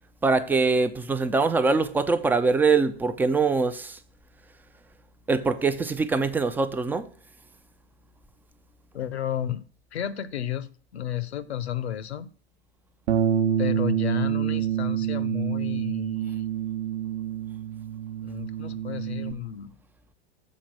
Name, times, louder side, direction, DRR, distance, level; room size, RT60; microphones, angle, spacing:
voice 1, 0.2-4.0 5.3-7.1, right 4 dB, 5° right, 0.3 m, -23 dB
voice 2, 8.9-9.6 9.9-12.3 13.6-16.5 18.2-19.7, left 10 dB, 75° left, 0.7 m, -32 dB
Bass guitar, 13.1-19.3, right 10 dB, 45° right, 0.9 m, -27 dB
7.3 x 4.3 x 6.0 m
figure-of-eight pair, 95°, 32 cm